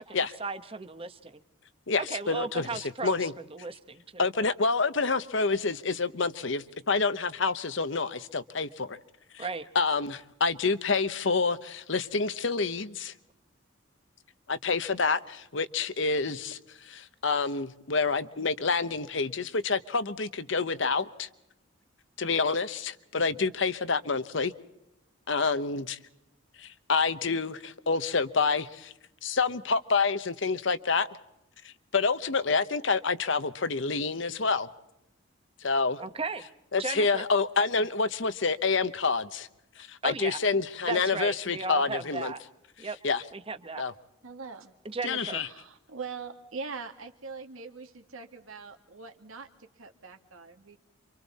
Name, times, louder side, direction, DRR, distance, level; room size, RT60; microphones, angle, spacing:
voice 1, 0.0-1.4 2.0-4.3 9.4-9.7 36.0-36.4 36.8-37.2 40.0-40.4 40.9-42.4 42.8-43.0 43.3-43.8 44.8-45.4, right 4 dB, 25° right, 1.0 m, -36 dB
voice 2, 1.9-3.3 4.2-9.0 9.3-9.5 9.7-13.1 14.5-21.3 22.2-24.5 25.3-26.0 26.6-28.9 29.2-31.1 31.6-34.7 35.6-36.0 36.7-39.5 39.8-42.3 43.0-43.2 43.8-43.9 45.0-45.5, left 4 dB, 65° left, 1.0 m, -28 dB
voice 3, 44.2-44.8 45.2-50.8, right 5 dB, 85° right, 2.2 m, -42 dB
28.5 x 25.5 x 4.2 m
head